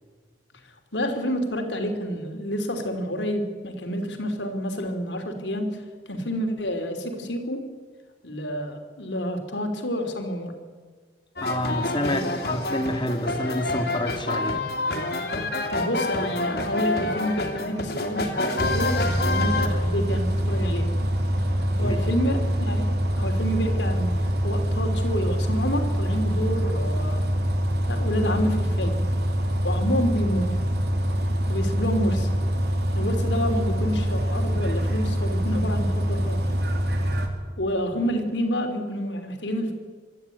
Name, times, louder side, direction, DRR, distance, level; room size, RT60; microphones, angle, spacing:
voice 1, 0.9-5.8 6.1-7.6 8.2-10.5 12.0-12.3 15.7-21.0 21.8-22.9 23.2-27.2 27.9-29.0 29.5-30.6 31.5-32.3 32.9-36.4 37.6-39.7, equal, 85° left, 5 dB, 3.3 m, -28 dB
sound 1, 11.4-19.7, left 2 dB, 60° left, 2.8 m, -28 dB
voice 2, 11.4-14.6 21.8-22.0, left 1 dB, 25° left, 6 dB, 1.9 m, -28 dB
Bus, 18.6-37.3, equal, 65° right, 2.7 m, -25 dB
24.5 x 13.0 x 9.3 m, 1.5 s
head